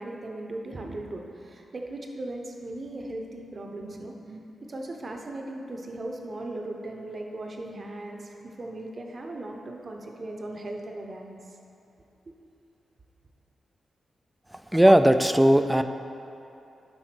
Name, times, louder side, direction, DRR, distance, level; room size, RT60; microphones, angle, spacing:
voice 1, 0.0-11.4 12.3-12.4, right 2 dB, 40° right, 2 dB, 0.9 m, -38 dB
voice 2, 14.7-15.8, right 1 dB, 5° right, 9 dB, 0.3 m, -18 dB
9.9 x 3.8 x 6.1 m, 2.9 s
wide cardioid pair, 105°, 0 cm